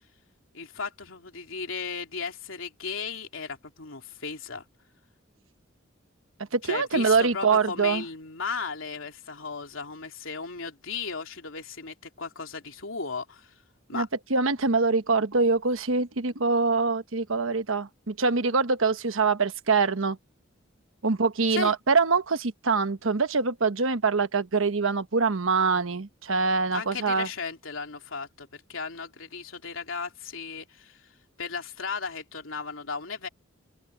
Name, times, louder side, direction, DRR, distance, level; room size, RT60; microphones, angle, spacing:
voice 1, 0.5-4.6 6.6-13.5 13.9-14.1 21.5-21.7 26.7-31.1 31.4-33.3, left 5 dB, 80° left, 3.2 m, -35 dB
voice 2, 6.5-8.0 13.9-20.2 21.0-27.3, right 4 dB, 80° right, 1.1 m, -24 dB
open air
head